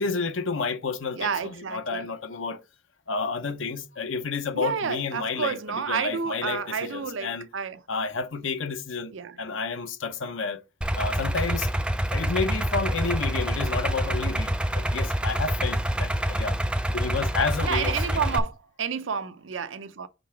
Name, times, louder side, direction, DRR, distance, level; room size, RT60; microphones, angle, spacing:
voice 1, 0.0-2.6 3.1-7.4 7.9-9.1 9.4-10.6 11.0-16.5 16.9-18.2, left 4 dB, 85° left, 0.8 m, -30 dB
voice 2, 1.1-2.0 4.5-7.8 9.1-9.4 17.6-20.1, right 6 dB, 80° right, 0.6 m, -30 dB
Idling, 10.8-18.4, right 1 dB, 5° right, 0.5 m, -27 dB
5.4 x 3.7 x 5.8 m
head